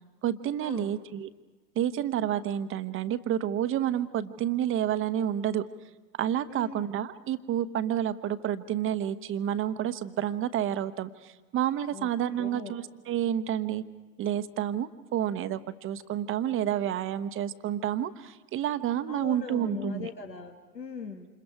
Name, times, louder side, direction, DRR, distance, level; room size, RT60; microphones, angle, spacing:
voice 1, 0.2-1.3 1.7-5.6 6.2-13.8 14.2-20.1, right 10 dB, 25° right, 12 dB, 1.0 m, -29 dB
voice 2, 6.5-6.8 11.9-12.7 19.1-21.3, left 5 dB, 85° left, 5 dB, 1.8 m, -40 dB
28.5 x 27.5 x 4.9 m, 1.2 s
figure-of-eight pair, 90°, 49 cm